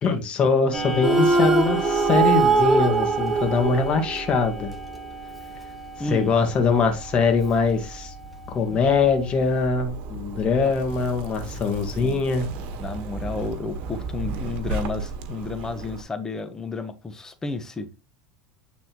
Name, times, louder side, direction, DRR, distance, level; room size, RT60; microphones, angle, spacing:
voice 1, 0.0-4.7 6.0-8.1 8.5-12.5, left 4 dB, 35° left, 1.9 m, -22 dB
Clock, 0.7-9.7, right 2 dB, ahead, 1.7 m, -35 dB
sound 1, 1.0-4.4, right 4 dB, 20° right, 1.5 m, -21 dB
voice 2, 6.0-6.3 10.6-10.7 11.9-12.2 12.8-17.9, left 3 dB, 20° left, 1.1 m, -32 dB
Zipper (clothing), 9.4-16.0, right 3 dB, 55° right, 1.5 m, -34 dB
9.0 x 4.1 x 3.1 m
supercardioid pair, 100°, 3 cm